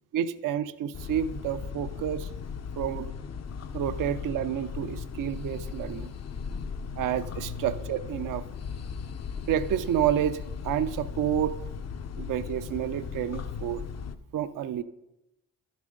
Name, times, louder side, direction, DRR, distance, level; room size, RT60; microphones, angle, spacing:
voice 1, 0.1-2.3 2.8-3.1 3.7-6.1 7.0-8.4 9.5-11.6 12.2-13.8 14.3-14.8, right 10 dB, 60° right, 12 dB, 0.6 m, -29 dB
sound 1, 0.9-14.2, left 6 dB, 45° left, 0.7 m, -37 dB
11.5 x 7.3 x 3.8 m, 0.91 s
supercardioid pair, 55°, 36 cm